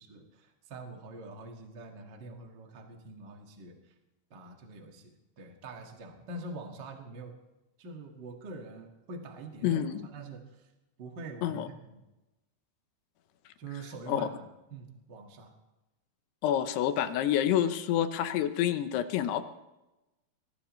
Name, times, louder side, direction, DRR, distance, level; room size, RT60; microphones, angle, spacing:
voice 1, 0.0-3.9 4.3-7.3 7.8-10.7 11.0-12.0 13.6-14.4 14.7-15.5, right 3 dB, 65° right, 2 dB, 1.0 m, -45 dB
voice 2, 9.6-10.1 11.4-11.7 14.1-14.2 16.4-19.4, left 11 dB, 75° left, 9 dB, 2.8 m, -28 dB
23.5 x 19.5 x 3.2 m, 0.99 s
omnidirectional pair, 5.2 m